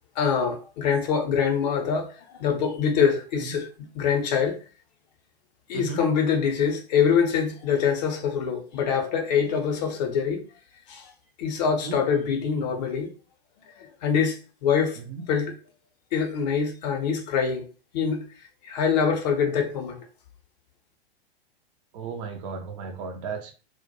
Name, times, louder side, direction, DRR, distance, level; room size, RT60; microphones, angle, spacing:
voice 1, 0.2-3.7 3.9-4.6 5.7-10.4 10.9-11.1 11.4-13.1 13.8-15.0 15.3-15.5 16.1-17.7 17.9-18.3 18.6-20.0, left 6 dB, 45° left, 0.6 m, -24 dB
voice 2, 21.9-23.5, right 5 dB, 35° right, 0.4 m, -34 dB
2.1 x 2.1 x 2.7 m
figure-of-eight pair, 105°, 31 cm